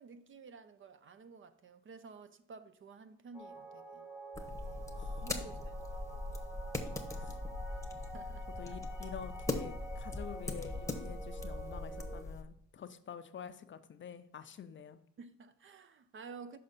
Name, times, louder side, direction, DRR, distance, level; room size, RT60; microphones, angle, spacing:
voice 1, 0.0-4.0 4.6-4.9 5.2-6.3 6.9-7.3 8.1-8.8 15.2-16.6, right 4 dB, 40° right, 0.6 m, -53 dB
sound 1, 3.3-12.2, right 2 dB, 5° right, 1.2 m, -48 dB
sound 2, 4.3-12.4, left 2 dB, 10° left, 0.9 m, -40 dB
voice 2, 4.9-5.3 7.2-7.4 8.6-15.0, left 7 dB, 40° left, 0.5 m, -48 dB
6.6 x 5.2 x 4.1 m
cardioid pair, 90°, 30 cm